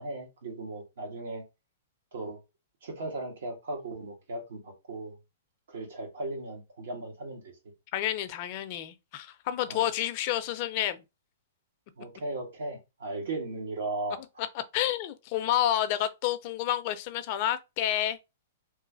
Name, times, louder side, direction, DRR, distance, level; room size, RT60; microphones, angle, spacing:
voice 1, 0.0-1.4 2.1-2.4 2.8-5.1 5.7-7.5 9.7-9.8 12.0-14.2, right 2 dB, 75° right, 1.2 m, -37 dB
voice 2, 7.9-11.0 14.7-18.2, left 12 dB, 45° left, 0.4 m, -29 dB
3.0 x 2.4 x 2.5 m
hypercardioid pair, 140°, 0 cm